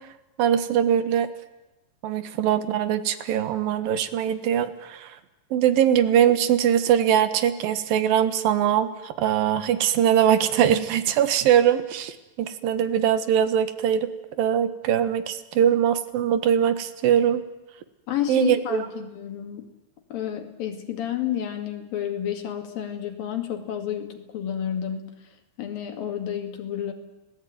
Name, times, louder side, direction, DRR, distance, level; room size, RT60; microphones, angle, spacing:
voice 1, 0.4-1.3 2.0-5.2 5.5-14.1 14.4-17.4 18.3-18.9, right 9 dB, 85° right, 12 dB, 3.2 m, -22 dB
voice 2, 18.1-19.7 20.1-25.1 25.6-26.9, left 10 dB, 90° left, 5 dB, 4.0 m, -30 dB
30.0 x 19.0 x 9.6 m, 1.1 s
omnidirectional pair, 4.0 m